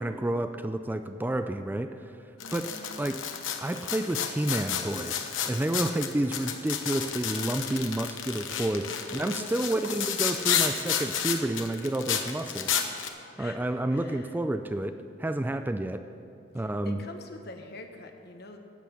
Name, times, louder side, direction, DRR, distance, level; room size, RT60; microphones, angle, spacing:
voice 1, 0.0-2.2 2.5-2.7 3.0-3.2 3.6-12.9 13.4-16.0 16.5-17.0, right 1 dB, 10° right, 9 dB, 0.3 m, -30 dB
sound 1, 2.4-13.1, left 8 dB, 80° left, 1.0 m, -31 dB
voice 2, 2.4-3.1 7.1-7.4 8.9-9.9 13.4-14.4 16.5-18.6, left 2 dB, 55° left, 5 dB, 1.2 m, -46 dB
12.0 x 8.2 x 7.1 m, 2.7 s
head